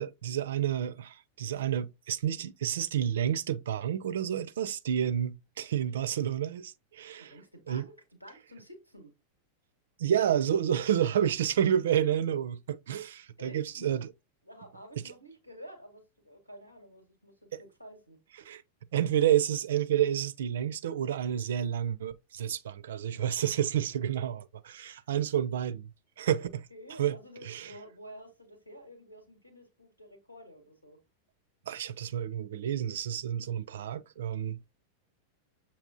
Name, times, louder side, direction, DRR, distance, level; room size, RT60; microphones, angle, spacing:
voice 1, 0.0-7.3 7.7-7.8 10.0-14.1 17.5-17.6 18.4-18.6 18.9-25.9 26.2-26.4 27.0-27.2 27.5-27.7 31.7-34.7, right 10 dB, 60° right, 0.4 m, -30 dB
voice 2, 7.2-9.1 13.4-14.0 14.4-18.2 25.0-25.3 26.4-31.0, equal, 90° left, 1.6 m, -50 dB
7.0 x 2.9 x 2.5 m
figure-of-eight pair, 90°, 0 cm